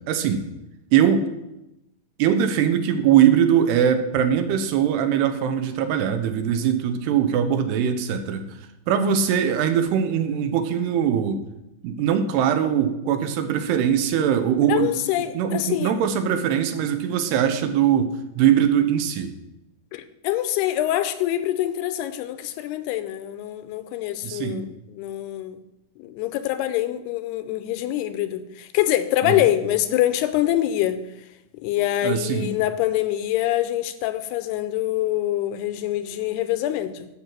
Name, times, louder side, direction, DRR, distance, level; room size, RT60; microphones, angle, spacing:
voice 1, 0.1-0.4 0.9-1.3 2.2-8.4 8.9-11.4 11.8-14.9 15.3-19.3 24.2-24.7 29.2-29.5 32.0-32.5, right 9 dB, 80° right, 2.9 m, -21 dB
voice 2, 14.7-15.9 19.9-24.7 24.9-25.6 26.0-31.0 31.5-37.1, left 13 dB, 80° left, 2.6 m, -25 dB
12.0 x 5.9 x 7.5 m
omnidirectional pair, 4.8 m